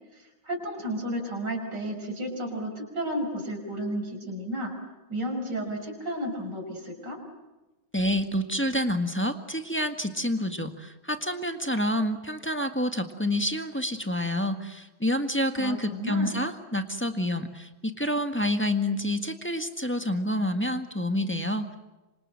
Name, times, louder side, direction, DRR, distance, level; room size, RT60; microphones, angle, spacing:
voice 1, 0.4-4.7 5.1-7.2 15.6-16.4, right 1 dB, 60° right, 3 dB, 6.3 m, -32 dB
voice 2, 7.9-21.8, left 1 dB, 5° left, 6 dB, 1.5 m, -28 dB
27.5 x 26.0 x 7.7 m, 1.1 s
omnidirectional pair, 2.2 m